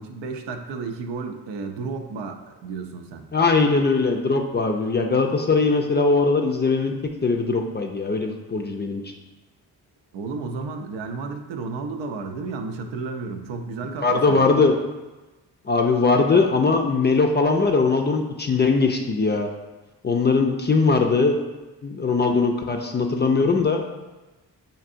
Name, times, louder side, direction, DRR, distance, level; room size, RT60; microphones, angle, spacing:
voice 1, 0.0-3.2 10.1-14.6, right 4 dB, 75° right, 5 dB, 0.5 m, -32 dB
voice 2, 3.3-6.9 7.2-9.0 14.0-14.8 15.7-19.5 20.0-21.4 21.8-23.8, left 4 dB, 25° left, 3 dB, 0.4 m, -20 dB
4.5 x 2.7 x 2.5 m, 1.1 s
supercardioid pair, 50°, 44 cm